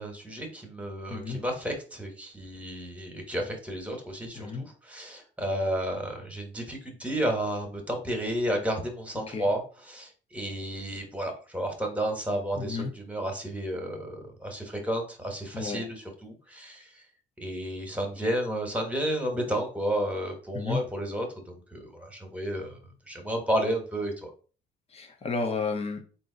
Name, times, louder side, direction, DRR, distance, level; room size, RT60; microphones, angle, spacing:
voice 1, 0.0-17.0 17.4-24.3, right 1 dB, 5° right, 2 dB, 1.3 m, -32 dB
voice 2, 12.6-12.9 15.5-15.8 20.5-20.8 24.9-26.0, left 4 dB, 30° left, 3 dB, 0.8 m, -31 dB
3.7 x 2.7 x 3.9 m, 0.38 s
cardioid pair, 90°, 20 cm